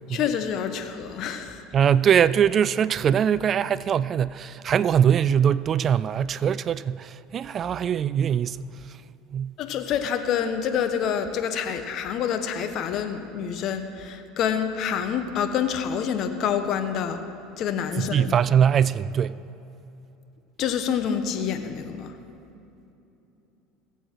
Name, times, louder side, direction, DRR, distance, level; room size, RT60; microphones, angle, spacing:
voice 1, 0.1-1.7 9.6-17.2 17.6-18.3 20.6-22.2, left 8 dB, 55° left, 1.1 m, -27 dB
voice 2, 1.7-8.6 9.3-9.5 18.0-19.4, right 8 dB, 40° right, 0.3 m, -22 dB
21.5 x 8.1 x 4.6 m
hypercardioid pair, 85°, 0 cm